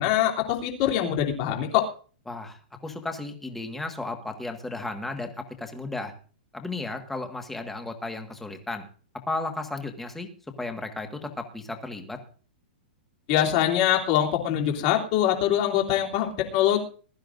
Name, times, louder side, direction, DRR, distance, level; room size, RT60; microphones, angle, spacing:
voice 1, 0.0-1.9 13.3-16.8, left 11 dB, 40° left, 1 dB, 2.9 m, -23 dB
voice 2, 2.3-6.1 6.5-8.8 9.3-10.3 10.6-12.2, left 2 dB, 5° left, 4 dB, 1.6 m, -34 dB
21.0 x 12.5 x 2.6 m, 0.40 s
hypercardioid pair, 165°, 5 cm